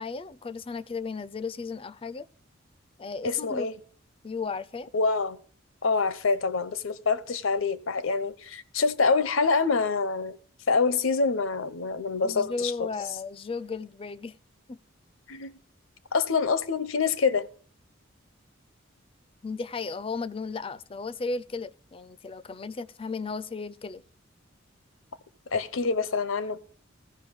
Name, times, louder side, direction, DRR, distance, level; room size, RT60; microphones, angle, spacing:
voice 1, 0.0-2.3 3.0-3.7 4.2-4.9 12.2-14.3 14.7-14.8 19.4-24.0, left 4 dB, 30° left, 0.4 m, -35 dB
voice 2, 3.2-3.7 4.9-5.4 5.8-10.4 10.7-12.9 15.3-15.5 16.1-17.5 25.5-26.6, left 4 dB, 85° left, 0.9 m, -26 dB
14.5 x 5.5 x 7.0 m
head